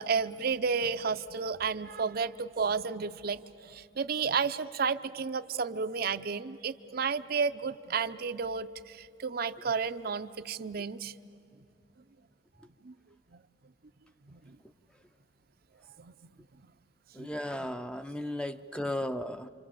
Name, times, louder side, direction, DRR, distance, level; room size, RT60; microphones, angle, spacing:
voice 1, 0.0-11.1 12.8-12.9 13.3-13.4 14.3-14.4 16.0-16.1 17.2-17.3 17.6-17.7 19.0-19.1, right 5 dB, 50° right, 10 dB, 0.6 m, -32 dB
voice 2, 17.2-19.5, left 1 dB, 5° left, 9 dB, 0.5 m, -35 dB
28.5 x 25.5 x 7.7 m, 2.7 s
head